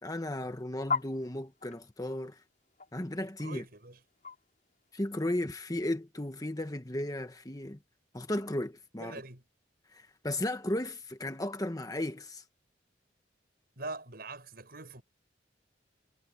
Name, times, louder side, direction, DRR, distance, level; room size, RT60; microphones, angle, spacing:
voice 1, 0.0-2.4 2.9-3.6 4.9-7.8 8.1-9.2 9.9-12.4, left 1 dB, 20° left, 1.2 m, -35 dB
sound 1, 0.8-5.5, left 5 dB, 45° left, 5.4 m, -38 dB
voice 2, 3.4-4.0 9.0-9.4 13.8-15.0, right 2 dB, 55° right, 7.7 m, -43 dB
head